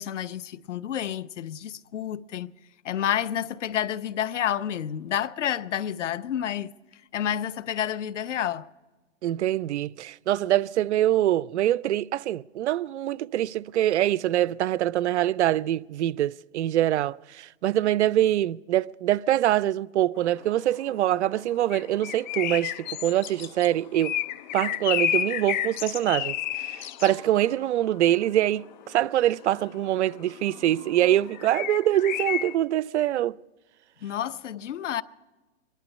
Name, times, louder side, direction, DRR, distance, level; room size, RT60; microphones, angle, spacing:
voice 1, 0.0-2.5 2.8-6.7 7.1-8.7 34.0-35.0, left 10 dB, 85° left, 0.8 m, -29 dB
voice 2, 9.2-24.2 24.5-33.4, right 13 dB, 70° right, 0.5 m, -24 dB
sound 1, 20.2-32.5, left 11 dB, 40° left, 0.5 m, -32 dB
23.0 x 11.5 x 5.3 m
hypercardioid pair, 150°, 35 cm